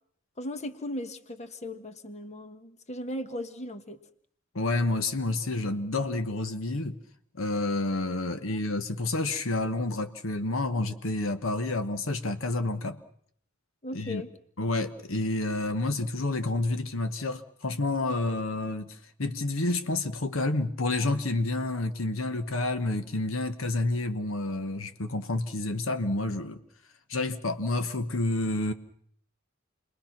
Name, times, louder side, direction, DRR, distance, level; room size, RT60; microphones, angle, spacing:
voice 1, 0.4-4.0 8.5-8.6 13.8-14.3, left 1 dB, 35° left, 1.4 m, -37 dB
voice 2, 4.5-7.0 7.3-13.0 13.9-14.2 14.6-26.6 27.1-28.7, left 2 dB, 80° left, 1.2 m, -29 dB
29.0 x 21.5 x 5.9 m
head